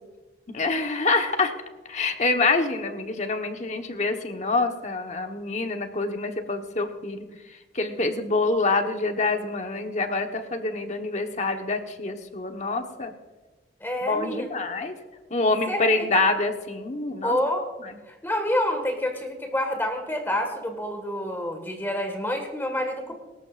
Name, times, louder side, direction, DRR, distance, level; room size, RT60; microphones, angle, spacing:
voice 1, 0.5-1.5 1.9-7.2 7.7-13.1 14.0-14.9 15.3-17.4 17.8-17.9, left 3 dB, 40° left, 5 dB, 1.2 m, -26 dB
voice 2, 13.8-14.5 15.7-16.1 17.2-17.6 18.1-23.1, left 1 dB, 15° left, 4 dB, 1.8 m, -28 dB
24.0 x 13.5 x 2.5 m, 1.2 s
head